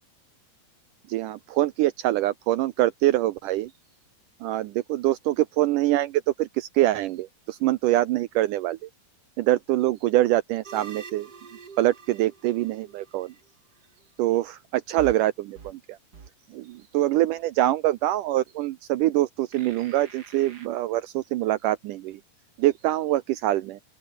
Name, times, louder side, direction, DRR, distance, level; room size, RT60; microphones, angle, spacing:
voice 1, 1.1-3.7 4.4-8.9 9.4-11.3 11.8-13.3 14.2-16.0 16.5-22.2 22.6-23.8, right 15 dB, 75° right, 2.0 m, -24 dB
sound 1, 10.6-13.5 15.0-15.1 15.5-15.7 16.1-16.3 16.7-16.8 19.5-20.7, right 5 dB, 35° right, 2.1 m, -44 dB
open air
omnidirectional pair, 4.2 m